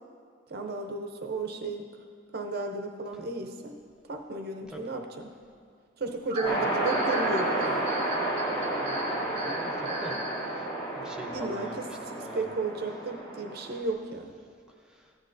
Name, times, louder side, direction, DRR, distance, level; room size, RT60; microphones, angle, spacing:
voice 1, 0.5-1.9 2.3-3.7 4.1-5.3 6.0-7.9 11.3-11.7 12.1-14.3, right 3 dB, 50° right, 4 dB, 0.6 m, -34 dB
sound 1, 6.3-10.4, right 1 dB, 35° right, 2.3 m, -36 dB
sound 2, 6.4-13.8, right 1 dB, 20° left, 1.7 m, -31 dB
voice 2, 8.5-10.2 10.5-10.7 11.0-12.4 14.8-15.1, right 1 dB, 5° right, 0 dB, 0.7 m, -44 dB
14.5 x 9.8 x 2.6 m, 2.1 s
head